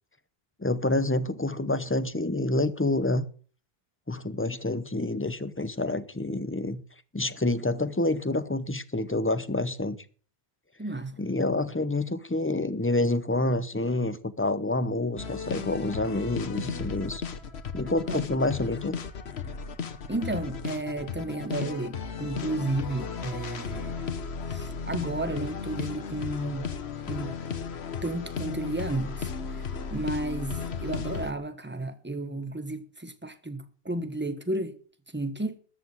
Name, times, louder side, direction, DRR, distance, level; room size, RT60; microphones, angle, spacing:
voice 1, 0.6-3.2 4.1-6.8 7.1-10.0 11.2-17.2 17.7-19.0, left 2 dB, 15° left, 0.7 m, -28 dB
voice 2, 10.8-11.2 18.1-18.2 20.1-24.2 24.5-26.7 27.1-27.3 28.0-29.6 29.9-34.8 35.1-35.6, right 2 dB, 10° right, 1.2 m, -33 dB
sound 1, 15.2-31.3, left 6 dB, 90° left, 1.4 m, -35 dB
13.5 x 8.1 x 7.8 m
omnidirectional pair, 1.0 m